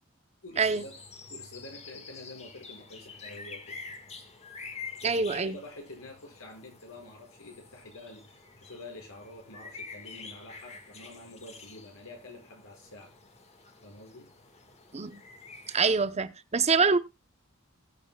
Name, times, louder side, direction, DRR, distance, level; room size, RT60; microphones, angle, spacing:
voice 1, 0.4-1.0 1.3-3.8 5.0-13.1 13.8-14.3, left 2 dB, 90° left, 5.5 m, -47 dB
sound 1, 0.6-15.8, left 4 dB, 30° left, 1.6 m, -47 dB
voice 2, 5.0-5.5 14.9-15.2 15.7-17.0, right 4 dB, 30° right, 0.7 m, -25 dB
20.0 x 8.0 x 2.2 m
head